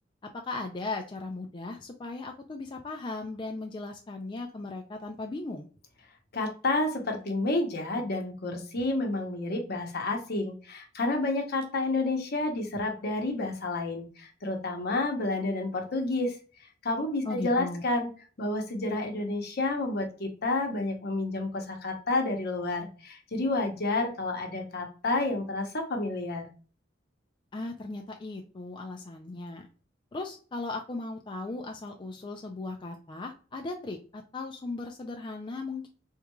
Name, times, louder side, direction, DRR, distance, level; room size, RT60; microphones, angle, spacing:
voice 1, 0.4-5.7 17.3-17.9 27.5-29.7 30.1-35.9, left 3 dB, 25° left, 3 dB, 0.3 m, -37 dB
voice 2, 6.3-16.4 16.8-18.1 18.4-26.5, left 2 dB, 55° left, 3 dB, 0.9 m, -30 dB
3.6 x 3.0 x 2.2 m, 0.38 s
head